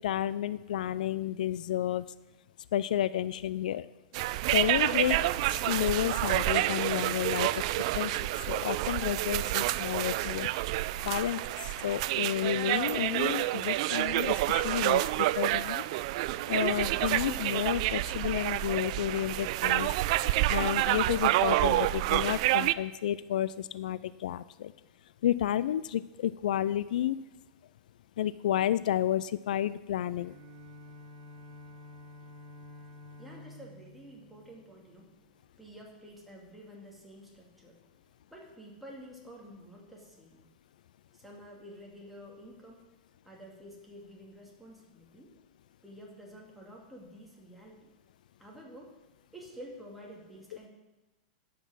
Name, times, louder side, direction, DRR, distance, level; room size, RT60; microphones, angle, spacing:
voice 1, 0.0-2.1 2.7-3.9 4.5-5.2 5.5-7.5 8.0-8.1 8.4-10.5 11.0-15.8 16.5-19.9 20.5-24.7 25.2-27.2 28.2-30.3, left 11 dB, 80° left, 17 dB, 0.3 m, -31 dB
sound 1, 4.1-22.7, right 16 dB, 50° right, 0.3 m, -28 dB
Bowed string instrument, 30.2-35.4, left 2 dB, 30° right, 3.8 m, -51 dB
voice 2, 33.2-35.1 35.6-37.8 38.3-40.4 41.1-42.8 43.2-45.3 45.8-47.9 48.4-48.9 49.3-50.7, equal, ahead, -3 dB, 2.2 m, -50 dB
12.0 x 6.0 x 6.2 m, 1.1 s
supercardioid pair, 150°, 4 cm